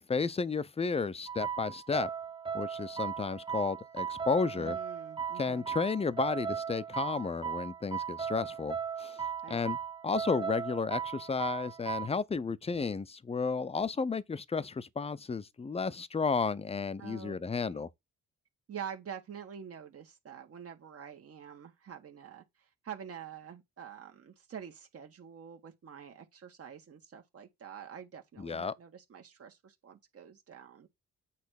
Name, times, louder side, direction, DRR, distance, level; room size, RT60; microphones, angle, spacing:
voice 1, 0.1-2.1 2.5-4.8 5.4-9.2 9.5-9.8 10.0-17.9 28.4-28.7, left 4 dB, 20° left, 0.7 m, -32 dB
sound 1, 1.3-12.1, right 7 dB, 15° right, 1.0 m, -37 dB
voice 2, 4.6-5.6 9.4-9.6 17.0-17.8 18.7-22.4 22.8-30.9, right 8 dB, 50° right, 1.6 m, -46 dB
8.3 x 3.3 x 6.4 m
cardioid pair, 90°, 30 cm